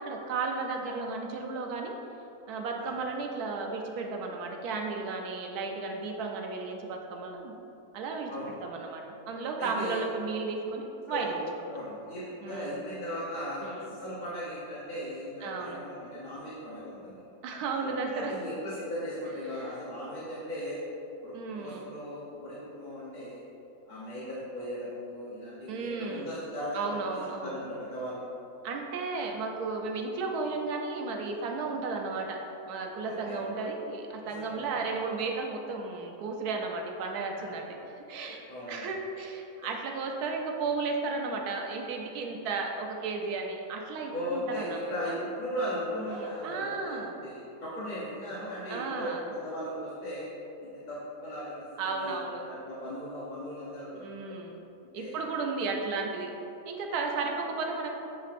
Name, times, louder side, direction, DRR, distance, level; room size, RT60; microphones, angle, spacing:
voice 1, 0.0-2.0 2.5-7.5 7.9-11.4 12.4-12.7 13.6-13.9 15.4-15.8 17.4-18.3 19.6-19.7 21.3-21.9 25.7-26.3 26.7-27.6 28.6-37.7 38.1-45.2 46.0-47.1 48.7-49.3 51.8-52.5 53.9-54.6 54.9-56.3 56.7-57.9, right 4 dB, 90° right, 2 dB, 1.2 m, -34 dB
voice 2, 9.6-10.0 11.1-11.4 11.7-17.2 17.8-20.8 21.2-23.4 23.9-28.3 33.0-33.7 34.2-34.9 38.2-38.9 44.1-50.3 50.6-51.5 51.8-54.1 54.9-55.3, equal, 35° left, -9 dB, 0.9 m, -38 dB
6.9 x 5.7 x 2.5 m, 2.9 s
omnidirectional pair, 1.6 m